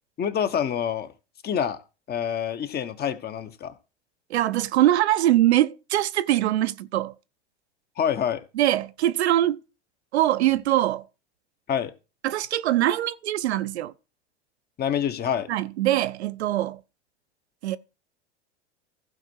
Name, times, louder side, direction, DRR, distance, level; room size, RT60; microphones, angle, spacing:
voice 1, 0.2-1.1 1.4-1.8 2.1-3.7 8.0-8.4 11.7-11.9 14.8-15.5, left 8 dB, 30° left, 1.2 m, -26 dB
voice 2, 4.3-7.1 8.6-9.6 10.1-11.0 12.2-13.9 15.5-16.8 17.6-17.8, right 14 dB, 70° right, 0.8 m, -22 dB
15.0 x 5.2 x 4.6 m
hypercardioid pair, 95°, 33 cm